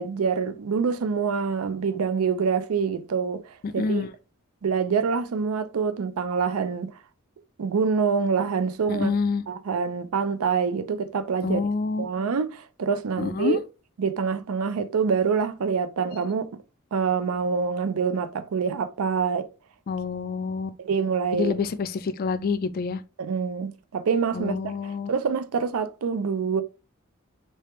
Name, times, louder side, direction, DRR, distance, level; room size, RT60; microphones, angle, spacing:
voice 1, 0.0-4.0 4.6-7.0 7.6-9.1 9.5-11.6 12.0-13.6 14.0-16.5 16.9-19.5 20.8-21.6 23.2-26.6, right 5 dB, 80° right, 0.4 m, -26 dB
voice 2, 3.6-4.1 8.9-9.4 11.4-12.1 13.2-13.6 19.9-20.7 21.3-23.0 24.3-25.1, left 5 dB, 45° left, 0.3 m, -27 dB
3.3 x 3.3 x 3.0 m
head